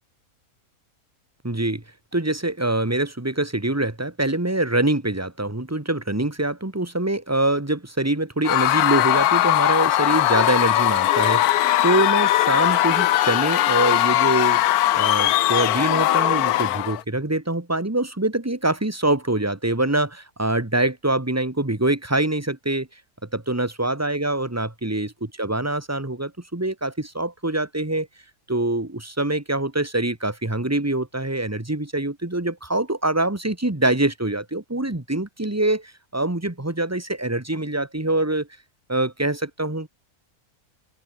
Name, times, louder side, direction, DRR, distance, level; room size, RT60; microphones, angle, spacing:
voice 1, 1.4-1.8 2.1-14.6 14.9-22.9 23.3-25.1 25.4-28.1 28.5-38.5 38.9-39.9, right 2 dB, 10° right, 1.7 m, -24 dB
Screaming / Cheering / Crowd, 8.4-17.0, left 14 dB, 85° left, 1.1 m, -19 dB
open air
omnidirectional pair, 1.6 m